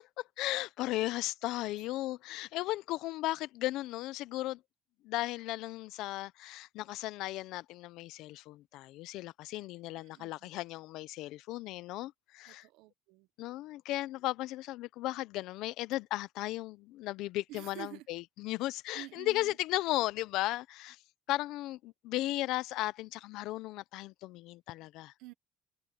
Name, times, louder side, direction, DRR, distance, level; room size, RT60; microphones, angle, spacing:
voice 1, 0.2-4.6 5.0-12.7 13.4-21.0 21.3-25.1, left 17 dB, 65° left, 0.5 m, -36 dB
voice 2, 10.0-10.5 12.5-13.3 17.5-18.1 18.9-19.6 25.2-25.3, right 17 dB, 75° right, 0.9 m, -49 dB
cardioid pair, 170°, 0 cm